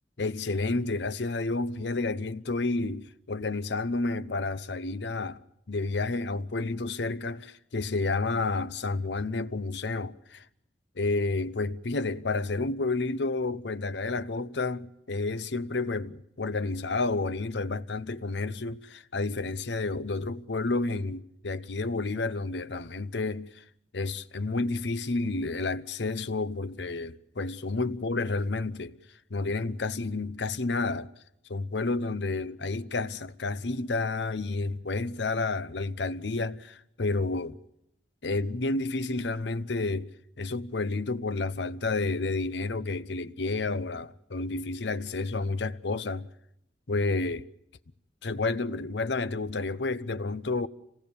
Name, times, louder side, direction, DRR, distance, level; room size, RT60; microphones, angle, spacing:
voice 1, 0.2-5.4 5.7-10.4 11.0-23.6 23.9-29.0 29.3-31.1 31.5-37.6 38.2-40.1 40.4-46.3 46.9-47.4 48.2-50.7, left 3 dB, 70° left, 0.8 m, -30 dB
26.5 x 18.0 x 6.9 m
head